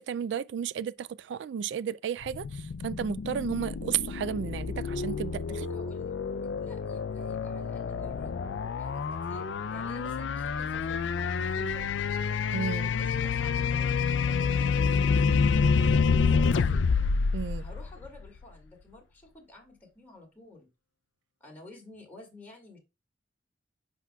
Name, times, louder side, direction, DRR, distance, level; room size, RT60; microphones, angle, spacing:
voice 1, 0.0-5.4 12.5-12.9 17.3-17.6, right 8 dB, 75° right, 0.3 m, -33 dB
sound 1, 2.2-18.4, left 5 dB, 90° left, 0.4 m, -28 dB
voice 2, 5.4-6.1 6.6-8.4 8.8-12.1 12.8-16.9 17.5-20.7 21.4-22.8, left 2 dB, 10° left, 2.2 m, -51 dB
7.9 x 5.8 x 2.3 m
head